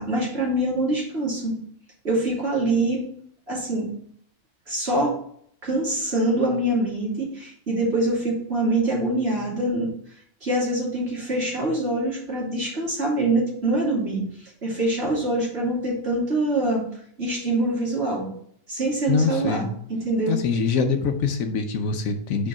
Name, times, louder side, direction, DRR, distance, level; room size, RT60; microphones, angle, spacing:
voice 1, 0.0-1.6 2.0-3.0 3.5-3.9 4.7-5.1 5.6-9.9 10.4-14.2 14.6-16.8 17.2-18.3 18.7-19.7 20.0-20.4, right 2 dB, 45° right, -5 dB, 3.0 m, -24 dB
voice 2, 19.1-19.7 20.3-22.5, left 5 dB, 70° left, 6 dB, 1.2 m, -24 dB
5.1 x 4.6 x 5.9 m, 0.63 s
omnidirectional pair, 1.5 m